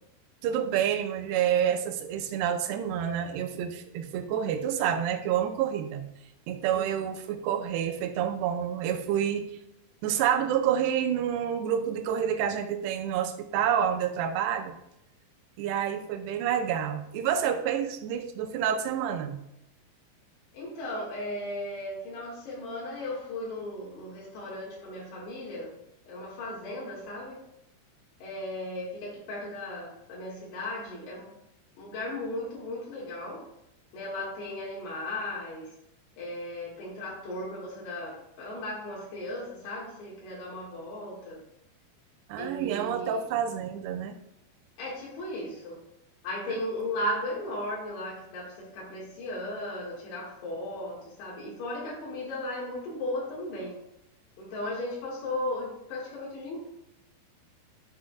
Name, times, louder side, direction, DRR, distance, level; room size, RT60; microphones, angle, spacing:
voice 1, 0.4-6.0 6.5-9.5 10.0-14.8 15.6-19.4 42.3-44.2, right 9 dB, 85° right, 6 dB, 2.7 m, -28 dB
voice 2, 20.5-25.8 26.1-27.4 28.2-31.3 31.8-33.5 33.9-35.7 36.2-41.4 42.4-43.2 44.8-45.8 46.2-53.7 54.4-56.7, left 1 dB, 75° left, -5 dB, 3.7 m, -36 dB
12.5 x 6.3 x 2.3 m, 0.83 s
omnidirectional pair, 4.8 m